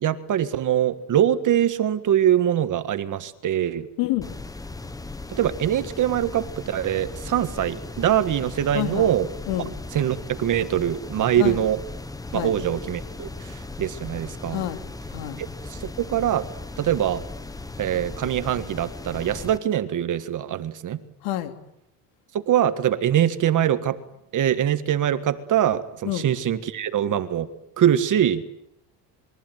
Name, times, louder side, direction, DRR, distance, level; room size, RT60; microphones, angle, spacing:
voice 1, 0.0-3.9 5.3-9.3 9.9-11.8 12.3-14.6 15.7-16.5 16.8-17.2 17.8-21.0 22.3-24.0 24.3-27.5 27.8-28.4, right 10 dB, 40° right, 12 dB, 1.7 m, -23 dB
voice 2, 4.0-4.3 8.7-9.1 9.5-9.7 11.4-11.6 12.3-12.6 14.5-14.8 15.1-15.4 21.2-21.5 26.0-26.3, left 14 dB, 80° left, 8 dB, 3.4 m, -27 dB
sound 1, 4.2-19.6, left 2 dB, 10° left, 1.0 m, -37 dB
28.0 x 23.0 x 9.3 m, 0.78 s
cardioid pair, 140°, 47 cm